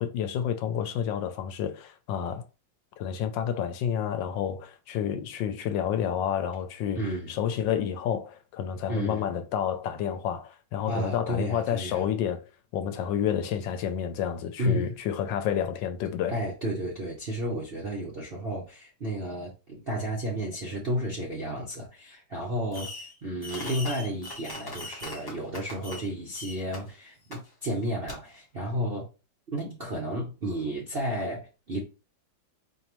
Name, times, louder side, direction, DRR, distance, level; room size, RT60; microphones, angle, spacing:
voice 1, 0.0-2.4 3.0-12.4 12.7-16.4, left 9 dB, 75° left, 1.2 m, -30 dB
voice 2, 6.9-7.3 8.9-9.2 10.8-12.1 14.6-14.9 16.3-22.9 23.2-29.1 29.5-31.8, equal, 55° right, 0.6 m, -32 dB
Fireworks, 22.7-23.1 23.4-26.1 26.3-26.8 27.3-27.4 28.1-28.2, left 2 dB, 30° left, 0.4 m, -39 dB
4.5 x 2.7 x 3.0 m
omnidirectional pair, 2.1 m